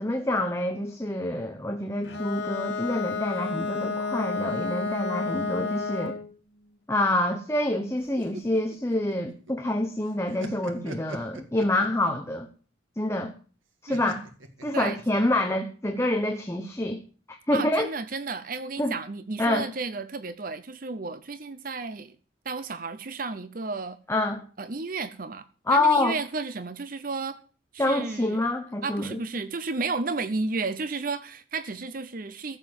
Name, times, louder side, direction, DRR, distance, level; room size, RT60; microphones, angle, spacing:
voice 1, 0.0-6.2 6.9-12.5 13.0-13.3 13.8-14.2 14.6-17.0 17.3-17.9 18.8-18.9 19.4-19.7 24.1-24.4 25.7-26.2 27.8-29.2, left 1 dB, 15° left, 1.0 m, -27 dB
Bowed string instrument, 2.0-6.3, left 4 dB, 65° left, 2.1 m, -30 dB
sound 1, 8.0-9.7 10.0-12.3 13.9-15.4, right 2 dB, 85° right, 1.9 m, -42 dB
voice 2, 13.9-14.2 14.7-15.0 17.5-22.2 22.4-24.0 24.6-27.4 27.7-28.4 28.8-32.6, right 3 dB, 45° right, 0.7 m, -33 dB
14.5 x 7.5 x 7.7 m
head